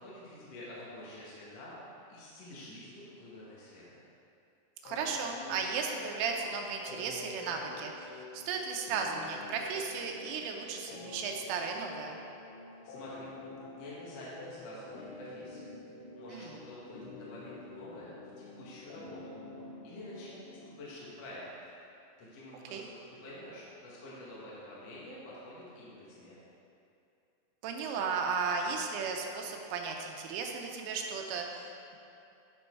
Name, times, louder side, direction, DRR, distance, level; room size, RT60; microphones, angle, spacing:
voice 1, 0.0-1.8 2.1-4.0 12.8-13.3 13.7-26.4, left 1 dB, 60° left, -7 dB, 1.6 m, -48 dB
voice 2, 4.8-12.2 16.3-16.5 22.7-22.9 27.6-32.0, right 5 dB, 85° right, 1 dB, 3.3 m, -35 dB
sound 1, 4.9-20.9, left 3 dB, 90° left, 2.3 m, -48 dB
10.5 x 5.3 x 4.6 m, 2.6 s
omnidirectional pair, 5.6 m